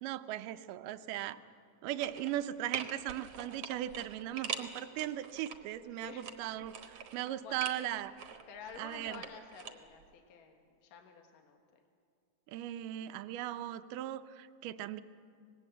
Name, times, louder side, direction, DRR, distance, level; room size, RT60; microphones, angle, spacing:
voice 1, 0.0-1.4 1.8-8.2 8.8-9.2 12.5-15.0, right 13 dB, 80° right, 11 dB, 2.3 m, -38 dB
voice 2, 0.9-1.3 1.9-2.3 5.8-6.3 7.1-7.7 8.5-11.6, left 6 dB, 75° left, 3 dB, 3.1 m, -52 dB
sound 1, 2.0-2.4 2.7-5.6 6.0-7.8 8.2-9.7 10.0-10.1, right 7 dB, 60° right, 1.8 m, -43 dB
25.5 x 19.5 x 7.8 m, 2.2 s
omnidirectional pair, 3.9 m